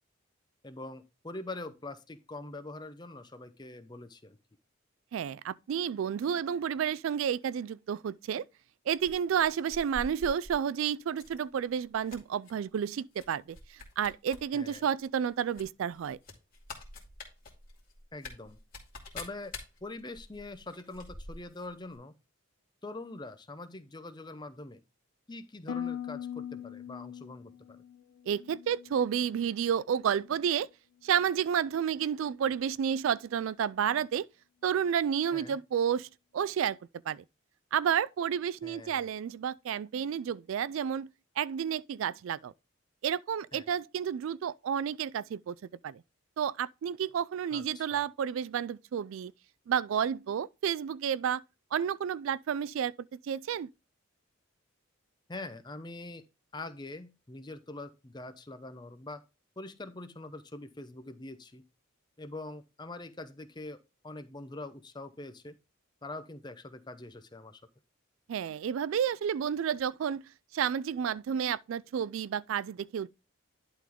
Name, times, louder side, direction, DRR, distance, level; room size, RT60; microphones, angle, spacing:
voice 1, 0.6-4.4 14.5-14.8 18.1-18.6 19.1-19.6 19.8-22.1 22.8-24.8 25.3-27.8 35.3-35.6 38.6-39.1 43.5-43.7 47.5-48.0 55.3-56.2 56.5-59.2 59.6-61.6 62.2-65.6 66.0-67.6, left 2 dB, 20° left, 0.6 m, -44 dB
voice 2, 5.1-8.4 8.9-16.2 28.3-30.7 31.0-34.3 34.6-36.1 36.3-36.8 37.1-37.2 37.7-41.1 41.4-42.5 43.0-45.5 45.8-46.0 46.4-49.3 49.7-51.4 51.7-52.9 53.2-53.7 68.3-70.2 70.5-73.1, right 8 dB, 70° right, 0.3 m, -31 dB
sound 1, 9.0-10.6 11.1-11.4 11.7-12.5 13.1-13.3 13.5-14.4 14.7-14.8 15.5-21.7 21.9-22.0, left 2 dB, 40° left, 2.2 m, -46 dB
Harp, 25.7-29.8 30.1-30.6 31.1-31.5, left 9 dB, 90° left, 0.4 m, -42 dB
11.0 x 3.9 x 3.6 m
head